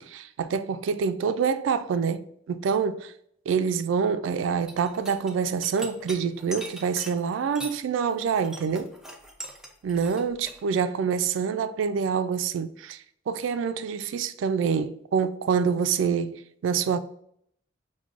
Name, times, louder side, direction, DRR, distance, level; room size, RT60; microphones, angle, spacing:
voice 1, 0.0-3.1 3.5-8.9 9.8-17.0, right 6 dB, 85° right, 0.3 m, -26 dB
sound 1, 4.5-7.8 8.1-10.6, right 1 dB, 5° right, 0.4 m, -40 dB
5.9 x 2.2 x 2.4 m
head